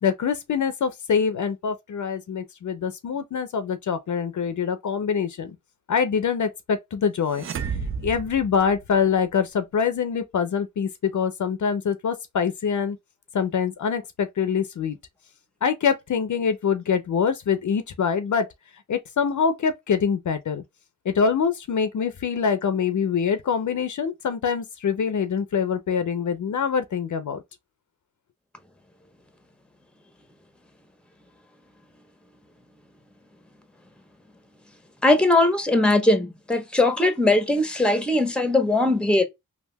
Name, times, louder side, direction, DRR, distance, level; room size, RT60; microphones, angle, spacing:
voice 1, 0.0-5.6 5.9-7.5 8.0-13.0 13.3-15.0 15.6-18.5 18.9-20.6 21.0-27.4, left 6 dB, 60° left, 0.6 m, -24 dB
sound 1, 7.3-9.3, right 6 dB, 40° right, 0.5 m, -32 dB
voice 2, 35.0-39.2, left 2 dB, 5° left, 0.9 m, -20 dB
3.5 x 2.4 x 2.2 m
cardioid pair, 65°, 34 cm